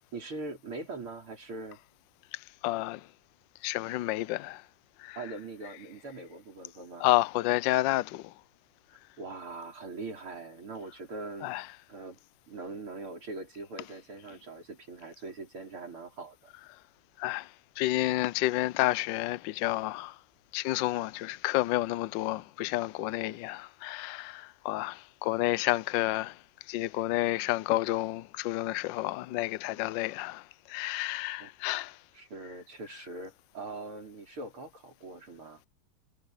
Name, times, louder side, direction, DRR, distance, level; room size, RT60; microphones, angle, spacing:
voice 1, 0.1-1.8 5.2-7.1 9.2-11.5 11.9-12.2 12.5-16.5 31.4-31.5 32.1-35.6, right 3 dB, 85° right, 6.0 m, -42 dB
voice 2, 2.3-3.1 3.6-4.6 5.0-5.2 7.0-8.3 11.4-11.7 17.2-20.2 20.5-26.4 26.7-32.0, left 17 dB, 70° left, 1.2 m, -30 dB
omnidirectional pair, 2.3 m